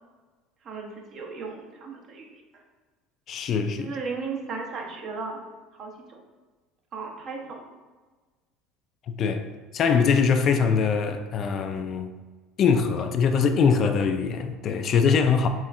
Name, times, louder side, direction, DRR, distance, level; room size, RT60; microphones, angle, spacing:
voice 1, 0.6-2.6 3.8-5.4 5.7-6.2 6.9-7.6, right 4 dB, 45° right, 0.7 m, -36 dB
voice 2, 3.3-3.9 9.1-9.5 9.7-12.1 12.6-15.5, left 6 dB, 45° left, 0.3 m, -22 dB
4.2 x 3.3 x 2.4 m
supercardioid pair, 95°, 0 cm